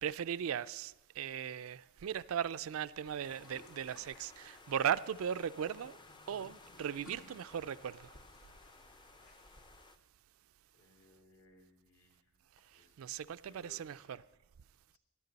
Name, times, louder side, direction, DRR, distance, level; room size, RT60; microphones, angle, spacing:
voice 1, 0.0-6.0 6.3-8.1 12.7-14.2, right 8 dB, 65° right, 0.3 m, -38 dB
sound 1, 3.0-9.8, left 1 dB, 90° left, 2.0 m, -61 dB
sound 2, 3.2-10.0, left 3 dB, 20° left, 0.5 m, -58 dB
voice 2, 10.7-12.4 12.7-13.1 13.3-14.2 14.9-15.0, left 2 dB, 70° left, 2.6 m, -64 dB
17.5 x 12.0 x 4.0 m
head